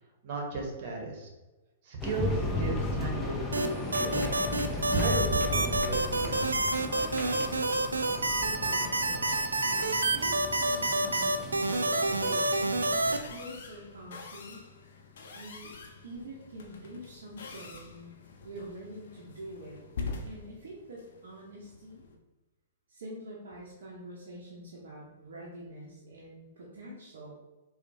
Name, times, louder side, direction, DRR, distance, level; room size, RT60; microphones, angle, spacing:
voice 1, 0.2-1.3 1.8-4.2 4.9-6.9, right 3 dB, 50° right, 0 dB, 1.1 m, -35 dB
sound 1, 2.0-13.2, left 2 dB, 15° left, 0.6 m, -35 dB
sound 2, 3.5-13.2, right 2 dB, 85° right, 0.3 m, -28 dB
voice 2, 8.4-12.4 13.1-14.6 15.3-15.7 16.0-18.2 18.4-19.8 20.2-22.1 22.9-27.3, right 1 dB, 70° right, -4 dB, 0.7 m, -45 dB
sound 3, 13.0-22.2, left 4 dB, 65° left, 0.6 m, -45 dB
4.4 x 2.4 x 2.6 m, 1.1 s
hypercardioid pair, 115°, 0 cm